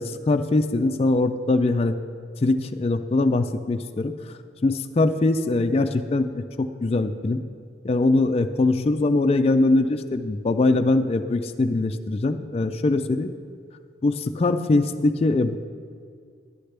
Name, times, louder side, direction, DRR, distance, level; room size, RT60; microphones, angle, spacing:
voice 1, 0.0-2.0 2.4-4.1 4.6-7.4 7.8-13.3 14.0-15.6, left 2 dB, 35° left, 7 dB, 0.3 m, -22 dB
11.5 x 10.0 x 3.3 m, 2.2 s
head